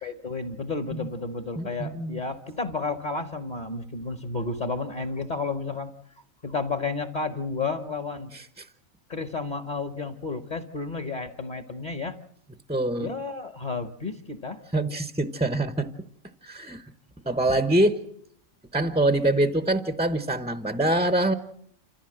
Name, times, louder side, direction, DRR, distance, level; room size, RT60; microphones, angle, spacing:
voice 1, 0.0-5.9 6.4-8.3 9.1-12.2 13.0-14.6, left 3 dB, 35° left, 10 dB, 1.1 m, -32 dB
voice 2, 1.6-2.2 8.3-8.7 12.7-13.1 14.7-15.9 16.4-16.8 17.3-18.0 18.7-21.3, right 1 dB, 5° right, 10 dB, 0.6 m, -24 dB
28.0 x 14.5 x 7.7 m, 0.68 s
omnidirectional pair, 1.4 m